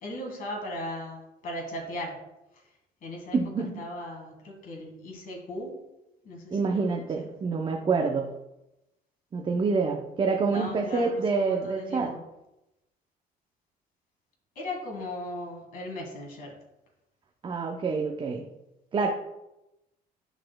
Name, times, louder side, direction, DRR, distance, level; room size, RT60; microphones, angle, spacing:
voice 1, 0.0-2.2 3.0-5.8 6.2-7.3 10.5-12.2 14.6-16.5, left 1 dB, 55° left, 0 dB, 1.7 m, -38 dB
voice 2, 3.3-3.8 6.5-8.3 9.3-12.1 17.4-18.4 18.9-19.1, right 4 dB, 30° right, 2 dB, 0.6 m, -27 dB
10.5 x 4.1 x 2.2 m, 0.92 s
cardioid pair, 110°, 17 cm